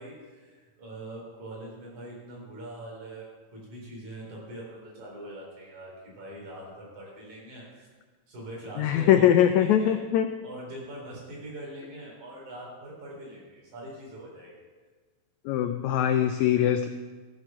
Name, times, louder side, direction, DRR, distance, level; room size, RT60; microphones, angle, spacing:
voice 1, 0.0-7.9 8.3-10.0 10.4-14.7 16.4-16.6, right 1 dB, 60° right, -4 dB, 5.4 m, -43 dB
voice 2, 8.8-10.3 15.5-16.9, left 10 dB, 85° left, 8 dB, 1.7 m, -22 dB
14.0 x 7.4 x 6.2 m, 1.4 s
omnidirectional pair, 3.9 m